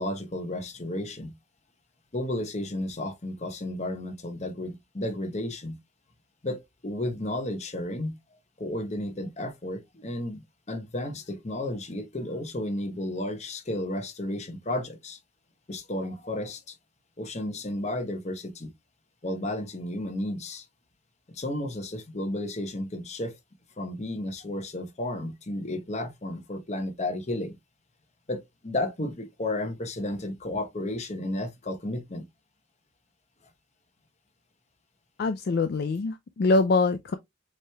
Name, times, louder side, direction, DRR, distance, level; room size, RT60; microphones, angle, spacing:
voice 1, 0.0-1.3 2.1-5.8 6.4-8.2 8.6-15.2 15.7-16.8 17.2-18.7 19.2-20.7 21.3-23.4 23.8-27.6 28.3-32.2, left 1 dB, 35° left, 0.9 m, -33 dB
voice 2, 35.2-37.1, left 3 dB, 50° left, 0.4 m, -24 dB
7.4 x 3.1 x 2.3 m
head